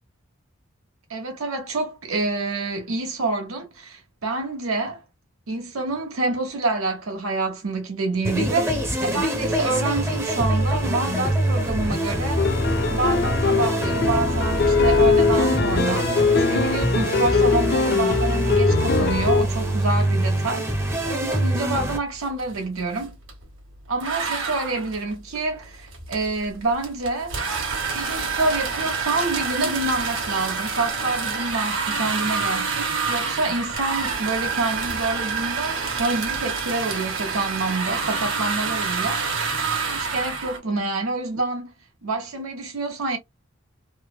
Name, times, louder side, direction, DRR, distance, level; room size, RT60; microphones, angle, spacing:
voice 1, 1.1-5.0 5.5-12.5 12.9-20.7 21.0-23.2 23.9-27.3 27.9-39.3 39.9-41.7 42.0-43.2, right 3 dB, 90° right, 1.0 m, -27 dB
sound 1, 8.2-22.0, right 1 dB, 10° right, 0.5 m, -25 dB
sound 2, 12.4-19.4, left 4 dB, 50° left, 0.3 m, -21 dB
sound 3, 21.6-21.9 22.2-23.4 24.0-40.6, right 5 dB, 65° right, 1.0 m, -27 dB
3.0 x 2.0 x 2.2 m
head